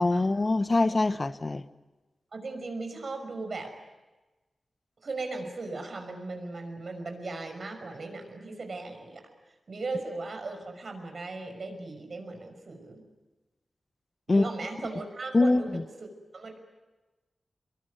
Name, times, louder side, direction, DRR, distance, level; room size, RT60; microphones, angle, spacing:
voice 1, 0.0-1.6 14.3-14.5 15.3-15.8, left 2 dB, 40° left, 11 dB, 1.0 m, -24 dB
voice 2, 2.3-3.7 5.0-9.2 9.7-13.0 14.3-15.8 16.3-16.6, right 3 dB, 65° right, 5 dB, 5.9 m, -37 dB
24.0 x 22.5 x 9.4 m, 1.1 s
cardioid pair, 60°, 0 cm